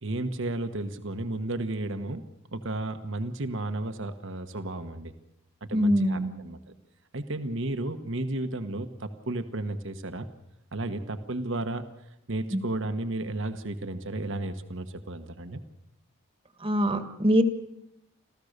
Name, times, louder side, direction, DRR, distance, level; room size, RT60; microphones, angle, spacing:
voice 1, 0.0-2.2 2.5-5.1 5.6-6.6 7.1-10.3 10.7-11.8 12.3-15.6, right 2 dB, 60° right, 9 dB, 1.3 m, -33 dB
voice 2, 5.7-6.3 12.5-12.6 16.6-17.4, equal, 25° right, 9 dB, 1.5 m, -23 dB
27.0 x 15.0 x 6.7 m, 0.82 s
head